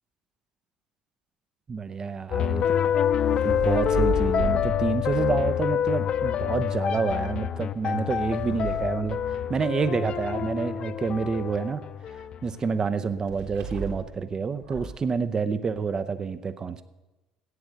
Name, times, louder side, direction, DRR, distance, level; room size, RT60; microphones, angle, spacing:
voice 1, 1.7-2.6 3.4-11.9 12.4-16.8, right 5 dB, 30° right, 12 dB, 0.7 m, -28 dB
sound 1, 2.3-12.5, left 9 dB, 45° left, 0.5 m, -26 dB
sound 2, 2.6-6.7 7.6-10.0 13.3-14.2 14.6-15.0, right 3 dB, 70° right, 2.8 m, -35 dB
14.5 x 9.0 x 6.4 m, 1.1 s
figure-of-eight pair, 55°, 2 cm